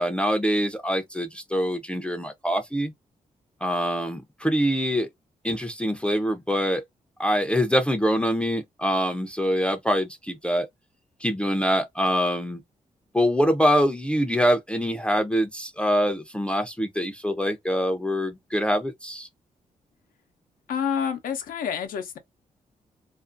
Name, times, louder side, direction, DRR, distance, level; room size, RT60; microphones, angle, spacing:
voice 1, 0.0-2.9 3.6-5.1 5.4-6.8 7.2-10.7 11.2-12.6 13.1-19.3, equal, 5° left, 0.5 m, -24 dB
voice 2, 20.7-22.2, left 7 dB, 85° left, 0.6 m, -28 dB
2.5 x 2.5 x 2.4 m
cardioid pair, 70°, 14 cm